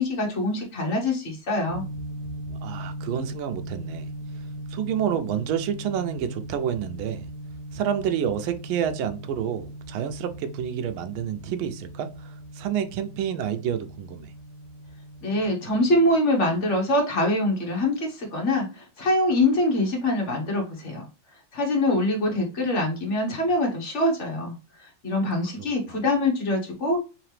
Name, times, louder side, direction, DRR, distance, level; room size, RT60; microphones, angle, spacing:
voice 1, 0.0-1.8 15.2-21.1 21.5-27.0, left 1 dB, 40° left, 1.3 m, -24 dB
sound 1, 1.7-16.1, right 1 dB, 65° right, 1.0 m, -39 dB
voice 2, 2.6-4.1 4.7-7.3 7.7-12.1 12.6-14.3, right 9 dB, 90° right, 1.5 m, -28 dB
3.8 x 3.2 x 3.2 m
omnidirectional pair, 2.2 m